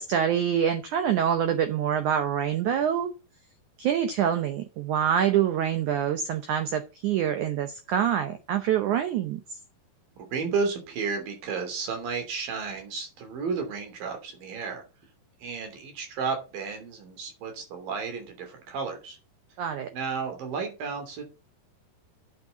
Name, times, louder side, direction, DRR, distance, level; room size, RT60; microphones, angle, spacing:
voice 1, 0.0-3.1 3.8-9.4 19.6-19.9, right 9 dB, 85° right, 1.7 m, -25 dB
voice 2, 10.2-14.8 15.4-19.2 19.9-21.2, right 5 dB, 60° right, 4.6 m, -32 dB
9.4 x 6.7 x 7.0 m
omnidirectional pair, 4.8 m